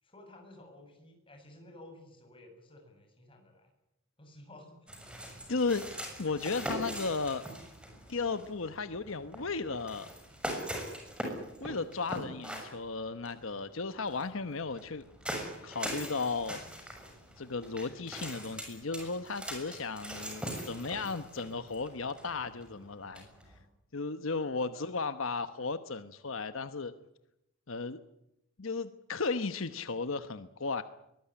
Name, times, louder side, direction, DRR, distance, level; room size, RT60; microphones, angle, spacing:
voice 1, 0.0-3.7 4.2-4.8 5.0-5.1 24.6-24.9, left 1 dB, 25° left, 4 dB, 7.4 m, -54 dB
sound 1, 4.9-23.6, equal, 5° right, 6.6 m, -42 dB
voice 2, 5.5-5.9 6.2-7.5 8.1-10.1 11.6-15.0 15.6-16.6 17.4-23.3 23.9-26.9 27.7-28.0 28.6-30.8, left 4 dB, 70° left, 11 dB, 1.0 m, -35 dB
23.5 x 20.5 x 10.0 m, 0.85 s
head